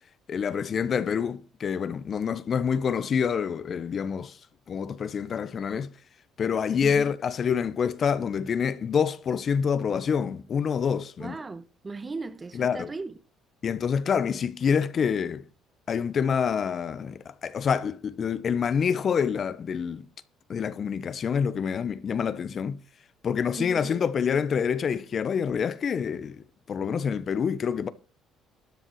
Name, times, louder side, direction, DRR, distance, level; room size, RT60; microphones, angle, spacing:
voice 1, 0.3-4.4 4.7-5.9 6.4-11.4 12.5-12.9 13.6-15.4 15.9-20.1 20.5-22.8 23.2-27.9, left 7 dB, 50° left, 1.0 m, -27 dB
voice 2, 11.2-13.2 23.6-23.9 26.8-27.1, right 3 dB, 25° right, 1.2 m, -37 dB
13.0 x 9.8 x 4.7 m
supercardioid pair, 75°, 0 cm